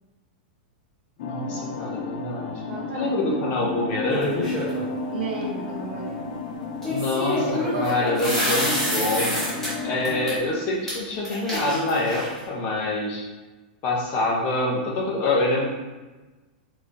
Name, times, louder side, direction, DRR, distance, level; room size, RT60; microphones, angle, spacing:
sound 1, 1.2-10.4, left 3 dB, 60° left, 0.4 m, -32 dB
voice 1, 1.2-2.6 2.9-4.5 6.9-9.4 9.8-13.2 13.8-15.7, left 2 dB, 35° left, -2 dB, 0.8 m, -26 dB
voice 2, 2.7-3.8 5.1-6.4 7.6-8.6, right 3 dB, 75° right, -2 dB, 0.9 m, -33 dB
sound 2, 4.1-4.8 6.8-9.7 10.1-10.3 10.9-11.0 11.2-12.4, left 1 dB, 5° left, 1.1 m, -27 dB
3.7 x 3.0 x 2.6 m, 1.2 s
supercardioid pair, 160°, 5 cm